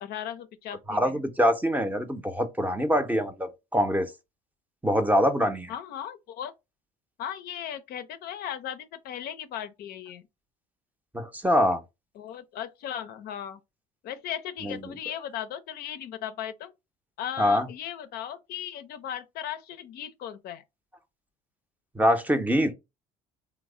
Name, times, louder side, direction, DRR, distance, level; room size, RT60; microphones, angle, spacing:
voice 1, 0.0-1.2 5.7-6.5 7.2-10.2 12.2-13.6 14.0-16.7 17.2-20.6, left 10 dB, 60° left, 0.5 m, -37 dB
voice 2, 0.9-4.1 4.8-5.7 11.1-11.8 14.6-14.8 17.4-17.7 21.9-22.7, equal, 10° right, 0.6 m, -24 dB
3.1 x 2.0 x 3.5 m
hypercardioid pair, 70°, 18 cm